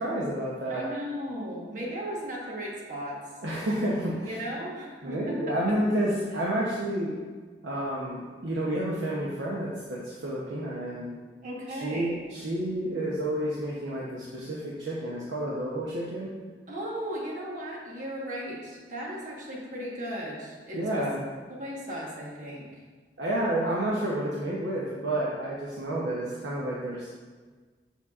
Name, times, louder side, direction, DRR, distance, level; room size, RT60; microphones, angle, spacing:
voice 1, 0.0-0.9 3.4-4.4 5.0-7.2 7.6-11.1 11.7-16.3 20.7-21.2 23.2-27.1, right 1 dB, 80° right, -5 dB, 0.8 m, -30 dB
voice 2, 0.7-3.2 4.2-5.8 11.4-12.2 16.7-21.0 21.5-22.7, equal, 45° right, -3 dB, 1.2 m, -36 dB
7.1 x 5.6 x 2.4 m, 1.5 s
head